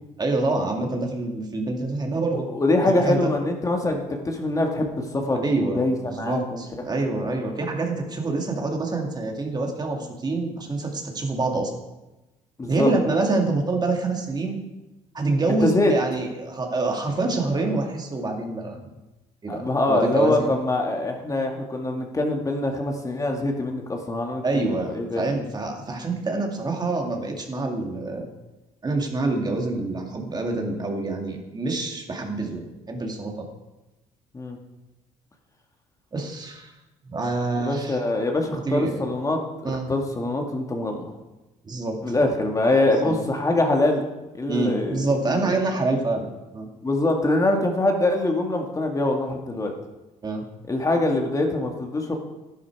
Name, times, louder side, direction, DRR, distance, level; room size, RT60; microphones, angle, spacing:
voice 1, 0.2-2.5 2.8-3.3 5.4-11.7 12.7-14.6 15.1-18.9 19.4-20.5 24.4-28.3 28.8-33.5 36.1-36.7 37.0-38.0 38.6-39.0 39.6-39.9 41.6-42.3 43.0-43.2 44.5-46.7 50.2-50.4, right 3 dB, 30° right, 2 dB, 2.4 m, -26 dB
voice 2, 2.3-6.6 7.2-7.4 12.6-12.9 15.6-15.9 19.5-24.6 24.9-25.3 34.3-34.6 37.6-41.1 42.0-44.1 44.3-45.0 45.3-45.4 46.8-49.7 50.7-52.2, left 2 dB, 25° left, 2 dB, 2.1 m, -24 dB
11.5 x 11.0 x 4.8 m, 1.0 s
supercardioid pair, 80°, 14 cm